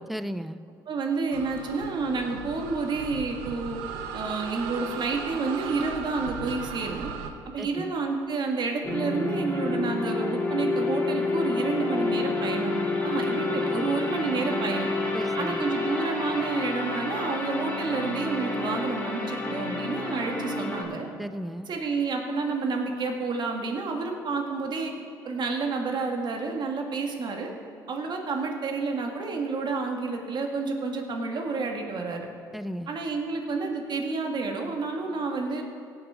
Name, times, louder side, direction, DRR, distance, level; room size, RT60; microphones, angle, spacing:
voice 1, 0.1-0.6 7.6-7.9 15.1-15.7 21.2-21.7 32.5-32.9, equal, ahead, 13 dB, 0.5 m, -35 dB
voice 2, 0.9-3.8 4.1-7.1 7.5-14.9 15.4-21.1 21.7-24.9 25.2-27.5 27.9-32.3 32.9-35.6, right 4 dB, 50° right, 3 dB, 1.9 m, -29 dB
sound 1, 1.3-7.3, right 6 dB, 85° right, 0.8 m, -37 dB
sound 2, 8.8-20.8, left 3 dB, 20° left, 2.2 m, -29 dB
17.0 x 6.1 x 5.0 m, 2.8 s
supercardioid pair, 70°, 9 cm